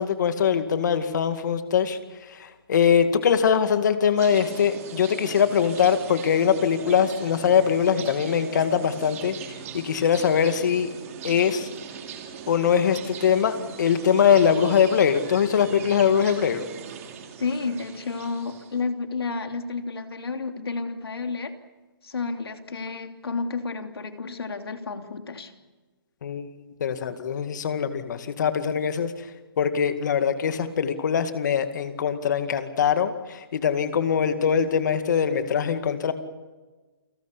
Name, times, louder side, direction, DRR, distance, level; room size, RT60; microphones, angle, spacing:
voice 1, 0.0-2.0 2.3-9.3 9.7-10.9 11.2-11.7 12.5-16.6 26.2-26.5 26.8-29.1 29.6-36.1, left 7 dB, 50° left, 9 dB, 2.2 m, -22 dB
sound 1, 4.2-18.8, right 7 dB, 40° right, 3.1 m, -40 dB
voice 2, 17.4-21.5 22.0-25.5, left 4 dB, 85° left, 6 dB, 3.0 m, -31 dB
28.5 x 19.0 x 8.4 m, 1.3 s
hypercardioid pair, 160°, 13 cm